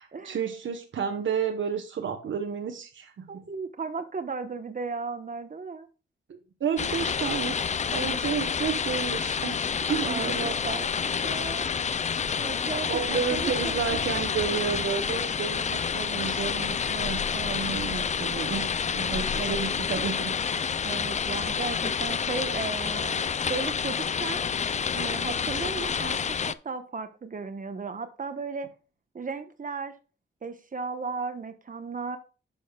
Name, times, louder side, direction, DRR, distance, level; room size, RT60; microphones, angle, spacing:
voice 1, 0.0-3.4 6.3-10.6 12.9-20.4, right 7 dB, 75° right, 1.1 m, -31 dB
voice 2, 3.3-5.9 10.1-14.0 20.8-28.7 29.1-29.9 30.4-32.2, right 4 dB, 45° right, 1.1 m, -35 dB
sound 1, 6.8-26.5, left 6 dB, 35° left, 0.4 m, -29 dB
11.0 x 6.9 x 2.3 m
wide cardioid pair, 100°, 20 cm